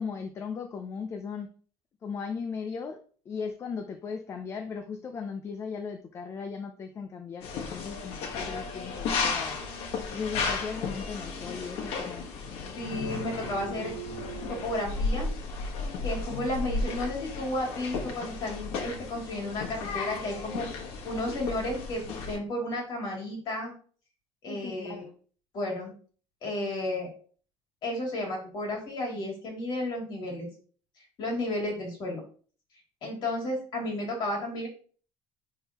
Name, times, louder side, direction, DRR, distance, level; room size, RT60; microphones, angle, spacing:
voice 1, 0.0-1.5 2.0-9.6 10.1-12.3 24.5-25.2, left 5 dB, 25° left, 6 dB, 0.5 m, -37 dB
sound 1, 7.4-22.4, left 4 dB, 60° left, 1.4 m, -34 dB
voice 2, 12.7-13.9 14.5-15.3 16.0-20.7 21.0-23.7 24.4-25.0 25.5-25.9 26.4-27.1 27.8-30.5 31.2-32.2 33.0-34.7, left 1 dB, 45° left, 0 dB, 2.7 m, -32 dB
9.9 x 3.7 x 2.9 m, 0.43 s
cardioid pair, 180°, 11 cm